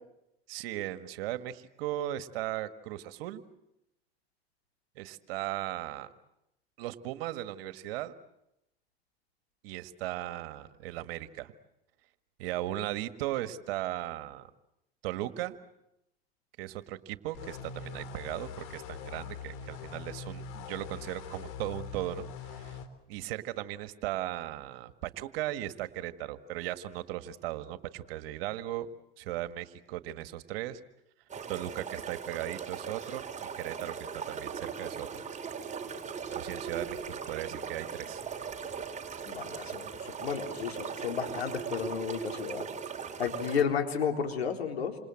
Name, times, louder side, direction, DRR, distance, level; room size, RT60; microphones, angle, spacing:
voice 1, 0.5-3.4 5.0-6.1 6.8-8.1 9.6-11.5 12.4-14.5 15.0-15.6 16.6-22.8 23.1-28.9 29.2-30.8 31.5-33.2 33.6-35.2 36.3-38.2, right 14 dB, 70° right, 11 dB, 1.8 m, -37 dB
sound 1, 17.3-22.9, left 6 dB, 60° left, 3.8 m, -43 dB
sound 2, 31.3-43.6, right 6 dB, 25° right, 3.7 m, -39 dB
voice 2, 39.2-42.7 43.2-45.0, left 7 dB, 90° left, 4 dB, 4.0 m, -32 dB
28.5 x 26.5 x 7.8 m, 0.87 s
hypercardioid pair, 85°, 30 cm